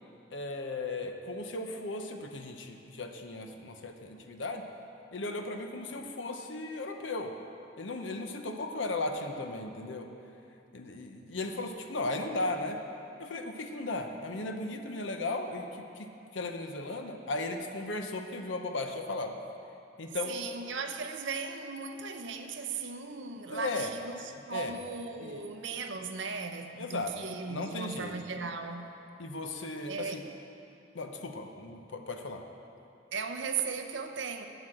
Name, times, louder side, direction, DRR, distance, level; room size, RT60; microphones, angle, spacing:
voice 1, 0.3-4.6 5.1-7.3 7.8-10.1 10.7-12.8 13.2-15.7 16.0-19.3 20.0-20.3 23.5-23.9 24.5-24.7 25.2-25.4 26.8-27.1 27.5-28.2 29.2-30.2 30.9-32.4, left 2 dB, 75° left, 5 dB, 0.8 m, -36 dB
voice 2, 20.3-28.9 29.9-30.2 33.1-34.5, right 5 dB, 70° right, 5 dB, 0.7 m, -37 dB
8.4 x 8.0 x 7.6 m, 2.7 s
head